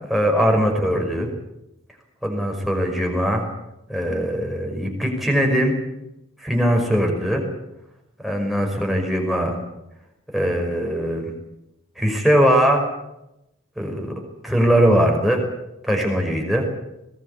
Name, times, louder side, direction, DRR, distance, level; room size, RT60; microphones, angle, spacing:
voice 1, 0.1-1.3 2.2-3.4 3.9-5.7 6.4-7.4 8.2-9.5 10.3-11.3 12.0-12.8 13.8-14.1 14.4-15.4 15.8-16.6, equal, ahead, 1 dB, 5.4 m, -20 dB
21.5 x 19.0 x 8.4 m, 0.89 s
head